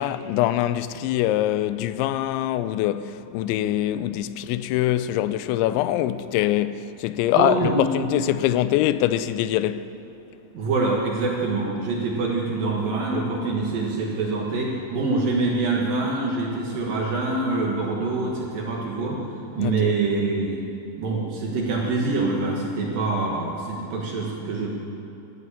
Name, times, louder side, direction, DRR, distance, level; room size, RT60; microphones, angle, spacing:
voice 1, 0.0-9.9 19.6-20.0, left 13 dB, 85° left, 2.9 m, -24 dB
voice 2, 7.3-7.9 10.5-19.2 19.5-20.6 21.0-24.7, right 3 dB, 60° right, 2.7 m, -25 dB
14.0 x 9.3 x 9.8 m
omnidirectional pair, 5.3 m